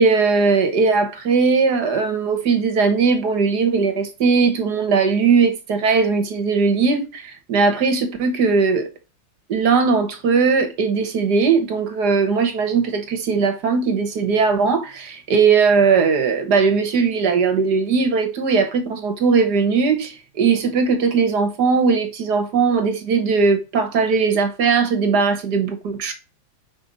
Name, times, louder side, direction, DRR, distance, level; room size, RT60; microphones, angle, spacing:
voice 1, 0.0-8.9 9.5-26.1, right 5 dB, 60° right, 1.6 m, -19 dB
5.2 x 4.8 x 4.0 m
omnidirectional pair, 2.1 m